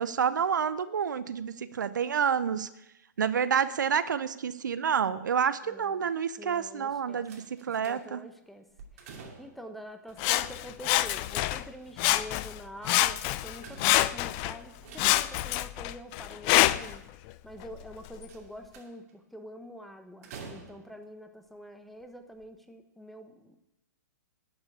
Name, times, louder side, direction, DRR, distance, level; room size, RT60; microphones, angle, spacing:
voice 1, 0.0-2.7 3.2-8.2, right 7 dB, 75° right, 14 dB, 0.7 m, -29 dB
voice 2, 5.7-6.1 6.4-7.2 7.8-8.7 9.0-9.1 9.4-17.1 17.4-23.6, equal, ahead, 7 dB, 1.1 m, -46 dB
sound 1, 7.3-8.3 8.7-9.7 11.0-12.0 13.1-14.3 14.7-15.5 16.3-17.3 18.3-19.1 20.2-21.1 21.9-22.0 22.4-22.5, right 5 dB, 50° right, 2.8 m, -49 dB
Sawing, 10.2-11.7 12.0-12.6 12.8-14.6 15.0-17.0 17.6-17.7, left 16 dB, 35° left, 0.5 m, -26 dB
12.0 x 6.3 x 8.5 m, 0.89 s
hypercardioid pair, 120°, 10 cm